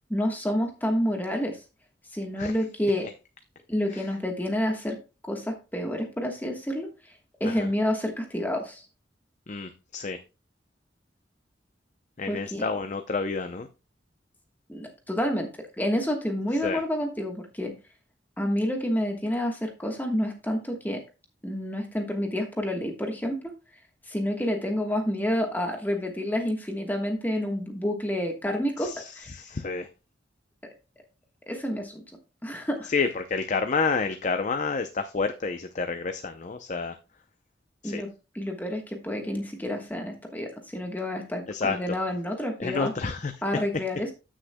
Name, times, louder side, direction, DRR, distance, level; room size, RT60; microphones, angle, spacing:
voice 1, 0.1-1.6 2.1-3.1 3.7-5.0 5.2-8.9 12.3-12.6 14.7-15.5 15.8-17.7 18.4-21.0 21.4-23.4 24.1-29.4 31.5-32.0 32.4-32.9 37.8-42.9 43.4-44.1, left 1 dB, 10° left, 1.3 m, -29 dB
voice 2, 9.5-10.2 12.2-13.7 16.6-16.8 28.8-29.9 32.9-37.0 37.8-38.0 41.5-41.8 42.6-43.3, left 4 dB, 40° left, 0.6 m, -29 dB
14.0 x 6.4 x 2.2 m
head